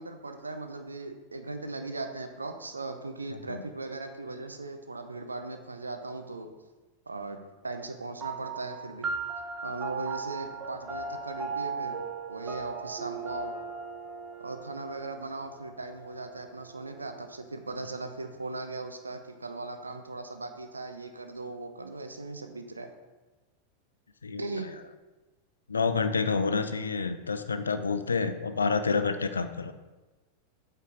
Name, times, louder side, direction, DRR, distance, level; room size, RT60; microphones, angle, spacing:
voice 1, 0.0-6.5 7.1-7.4 7.6-9.1 9.6-12.0 12.3-13.6 14.4-22.9 24.4-24.8, right 3 dB, 80° right, 7 dB, 0.7 m, -38 dB
voice 2, 3.3-3.6 24.2-24.4 25.7-29.7, left 5 dB, 75° left, 10 dB, 0.5 m, -28 dB
sound 1, 8.2-17.0, right 5 dB, 25° right, 1.2 m, -38 dB
8.2 x 4.5 x 3.8 m, 1.2 s
figure-of-eight pair, 90°, 0 cm